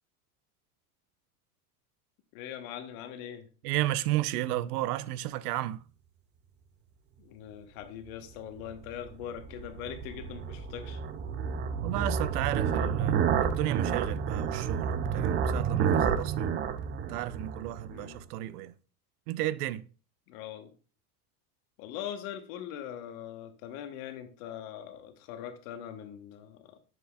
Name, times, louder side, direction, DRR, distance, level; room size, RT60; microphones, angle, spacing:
voice 1, 2.3-3.5 7.2-11.0 17.9-18.2 20.3-20.7 21.8-26.8, left 10 dB, 65° left, 1.2 m, -41 dB
voice 2, 3.6-5.8 11.8-16.5 17.1-18.7 19.3-19.9, right 15 dB, 80° right, 0.6 m, -33 dB
sound 1, 8.6-18.2, right 7 dB, 25° right, 0.4 m, -30 dB
7.1 x 6.6 x 2.3 m
supercardioid pair, 115°, 45 cm